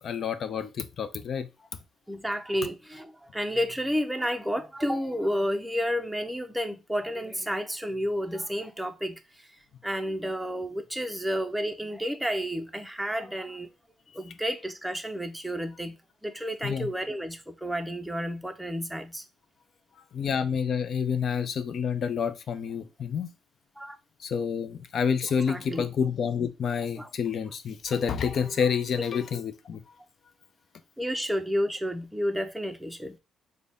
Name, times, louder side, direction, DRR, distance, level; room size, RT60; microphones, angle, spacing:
voice 1, 0.0-1.5 16.6-16.9 20.1-23.3 24.2-29.8, left 7 dB, 55° left, 0.5 m, -28 dB
voice 2, 2.1-9.2 9.8-13.7 14.1-16.0 16.2-19.2 23.8-24.0 25.5-25.9 27.0-27.1 29.0-29.1 29.3-29.4 31.0-33.2, equal, 5° right, 0.5 m, -31 dB
3.9 x 2.2 x 3.5 m
cardioid pair, 90°, 0 cm